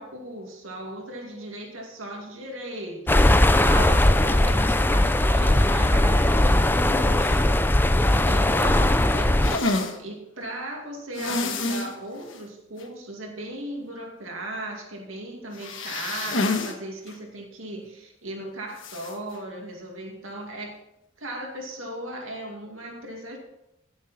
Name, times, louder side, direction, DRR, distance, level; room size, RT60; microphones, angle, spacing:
voice 1, 0.0-7.6 8.1-20.8 21.2-23.4, right 1 dB, 85° right, 1 dB, 2.4 m, -37 dB
sound 1, 3.1-9.6, left 1 dB, 10° left, 0.4 m, -19 dB
sound 2, 9.4-10.0 11.1-11.9 12.3-12.4 12.8-12.9 15.5-16.7 17.1-17.2 18.8-19.1, left 2 dB, 65° left, 1.4 m, -27 dB
16.0 x 7.2 x 4.3 m, 0.87 s
head